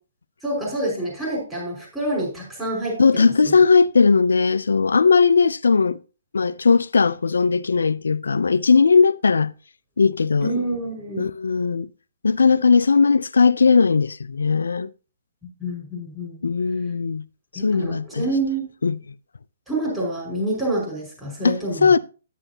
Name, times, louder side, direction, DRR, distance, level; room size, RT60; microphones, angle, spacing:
voice 1, 0.4-3.6 10.4-11.3 15.6-16.4 17.6-18.7 19.7-22.0, right 1 dB, 5° right, 5.3 m, -27 dB
voice 2, 3.0-6.0 6.3-9.5 10.0-10.5 11.2-11.9 12.2-14.9 16.4-17.2 17.5-18.3 18.8-19.0 21.4-22.0, left 5 dB, 85° left, 0.5 m, -18 dB
10.0 x 9.7 x 2.8 m
hypercardioid pair, 145°, 0 cm